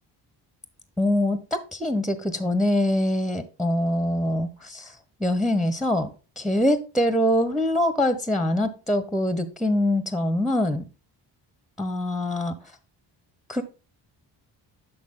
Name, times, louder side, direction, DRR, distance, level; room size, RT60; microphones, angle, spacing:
voice 1, 1.0-1.4 1.7-10.8 11.8-12.5 13.5-13.6, left 1 dB, ahead, 12 dB, 1.1 m, -24 dB
8.7 x 5.9 x 3.8 m, 0.34 s
hypercardioid pair, 50°, 50 cm